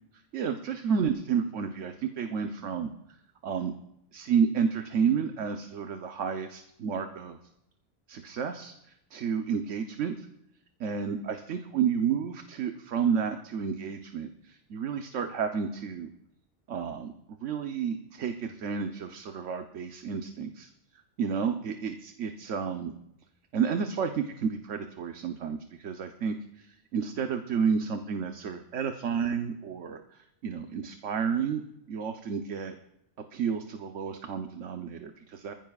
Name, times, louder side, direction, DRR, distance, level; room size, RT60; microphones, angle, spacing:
voice 1, 0.3-2.9 3.4-3.7 4.1-7.4 8.1-10.3 10.8-16.1 16.7-17.1 17.4-20.7 21.2-22.9 23.5-31.6 31.9-32.7 33.3-35.5, right 6 dB, 80° right, 6 dB, 1.2 m, -31 dB
25.0 x 15.0 x 2.4 m, 0.82 s
omnidirectional pair, 1.2 m